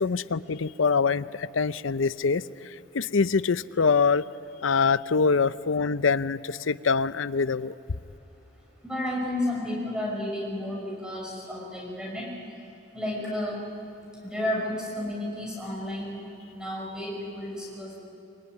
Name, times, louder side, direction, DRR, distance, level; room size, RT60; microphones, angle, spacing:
voice 1, 0.0-4.2 4.6-7.7, left 5 dB, 90° left, 16 dB, 0.6 m, -24 dB
voice 2, 8.8-12.3 12.9-13.6 14.2-16.2 16.5-18.0, left 1 dB, 5° right, -2 dB, 6.2 m, -32 dB
25.5 x 24.0 x 9.7 m, 2.9 s
head